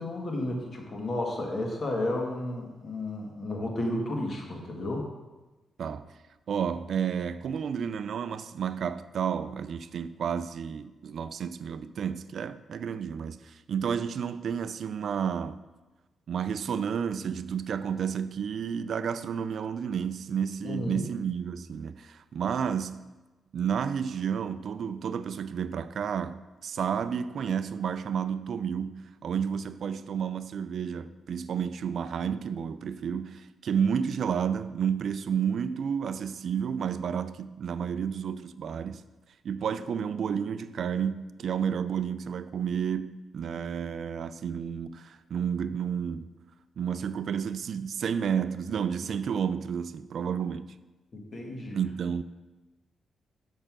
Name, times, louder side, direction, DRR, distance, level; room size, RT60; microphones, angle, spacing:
voice 1, 0.0-5.1 20.6-21.0 51.1-51.8, left 1 dB, 50° left, 1.8 m, -32 dB
voice 2, 6.5-15.6 16.3-23.1 23.5-39.0 39.4-46.3 46.8-50.7 51.7-52.2, right 7 dB, 65° right, 0.4 m, -31 dB
6.6 x 5.6 x 6.0 m
cardioid pair, 80°, 0 cm